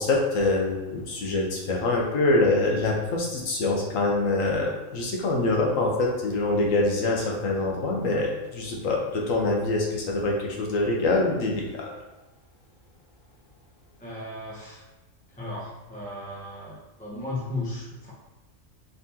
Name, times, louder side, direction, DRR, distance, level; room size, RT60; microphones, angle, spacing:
voice 1, 0.0-11.9, left 2 dB, 80° left, -1 dB, 1.2 m, -25 dB
voice 2, 14.0-14.8 15.3-18.1, left 2 dB, 5° left, -7 dB, 0.8 m, -35 dB
4.0 x 3.6 x 2.7 m, 1.1 s
omnidirectional pair, 1.4 m